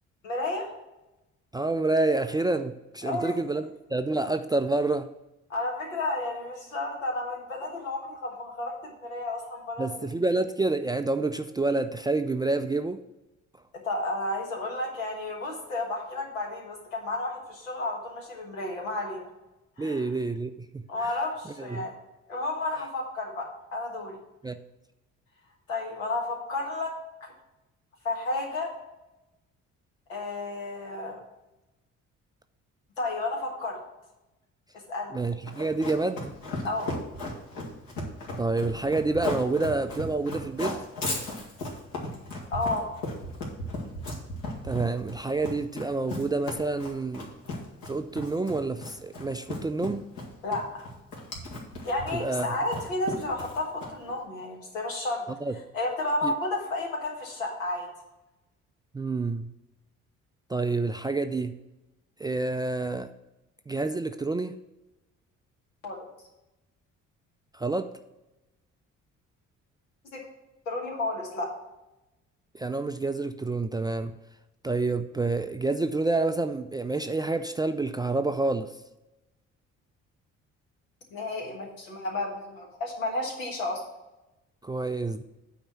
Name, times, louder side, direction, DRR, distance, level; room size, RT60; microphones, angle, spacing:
voice 1, 0.2-0.7 3.0-3.3 5.5-10.1 13.8-19.3 19.8-20.0 20.9-21.9 22.3-24.2 25.7-26.9 28.0-28.7 30.1-31.2 33.0-33.8 34.7-35.2 36.6-36.9 42.5-42.9 50.4-50.8 51.8-55.2 55.7-57.9 65.8-66.1 70.1-70.2 70.6-71.5 81.1-83.8, left 2 dB, 80° left, 0 dB, 1.5 m, -32 dB
voice 2, 1.5-5.1 9.8-13.0 19.8-21.1 21.6-21.9 24.4-24.6 35.1-36.3 38.4-40.8 44.6-47.3 47.9-50.0 52.1-52.5 55.4-55.6 56.2-56.3 58.9-59.5 60.5-61.6 62.2-63.1 63.7-64.6 67.5-67.9 72.5-74.2 74.6-78.7 84.6-85.2, right 3 dB, 10° right, 8 dB, 0.3 m, -28 dB
Run, 35.5-54.1, left 2 dB, 60° left, 1.9 m, -36 dB
9.0 x 4.4 x 6.0 m, 0.98 s
figure-of-eight pair, 45°, 39 cm